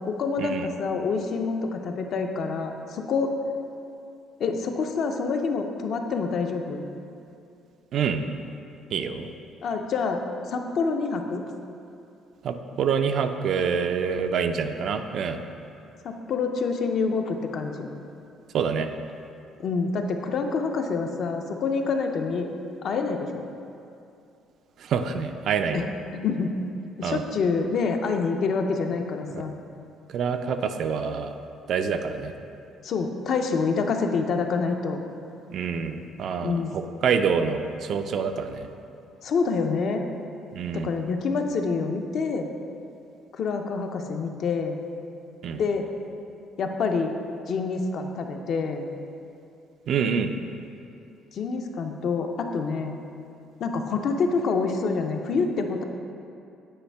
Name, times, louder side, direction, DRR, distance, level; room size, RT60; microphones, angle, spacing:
voice 1, 0.0-3.3 4.4-6.8 9.6-10.2 10.5-11.4 16.0-17.9 19.6-23.4 25.7-25.9 26.1-26.5 27.0-29.5 32.8-35.0 36.4-36.8 39.2-40.0 40.7-42.5 43.4-44.8 45.6-45.9 46.6-47.1 47.5-48.9 51.3-53.0 53.6-55.8, left 4 dB, 50° left, 4 dB, 0.5 m, -27 dB
voice 2, 7.9-8.2 8.9-9.3 12.4-15.4 18.5-18.9 24.8-25.9 27.0-27.2 30.1-31.3 31.7-32.3 35.5-38.7 40.5-40.9 45.4-45.6 49.9-50.3, right 6 dB, 50° right, 7 dB, 0.3 m, -26 dB
8.6 x 4.8 x 3.4 m, 2.7 s
cardioid pair, 150°, 0 cm